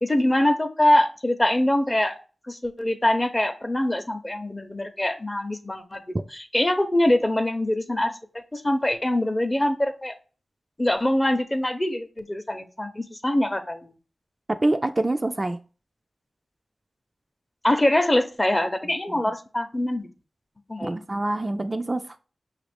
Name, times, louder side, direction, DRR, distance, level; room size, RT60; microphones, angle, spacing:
voice 1, 0.0-2.2 2.5-8.2 8.5-10.1 10.8-13.9 17.6-20.1 20.7-21.0, left 1 dB, 25° left, 0.7 m, -24 dB
voice 2, 14.5-15.6 19.1-19.3 20.8-22.2, right 2 dB, 35° right, 0.3 m, -26 dB
5.9 x 2.5 x 3.4 m
cardioid pair, 40°, 0 cm